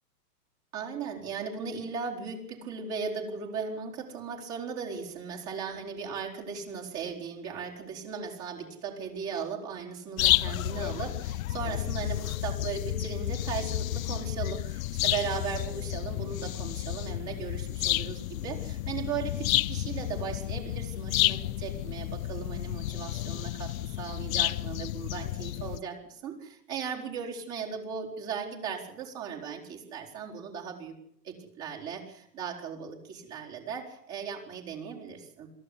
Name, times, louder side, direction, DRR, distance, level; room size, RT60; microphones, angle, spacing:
voice 1, 0.7-30.9 31.2-35.5, right 6 dB, 35° right, -1 dB, 4.4 m, -37 dB
sound 1, 10.2-25.8, left 15 dB, 55° left, 0.8 m, -31 dB
22.5 x 14.5 x 8.6 m, 0.73 s
hypercardioid pair, 130°, 50 cm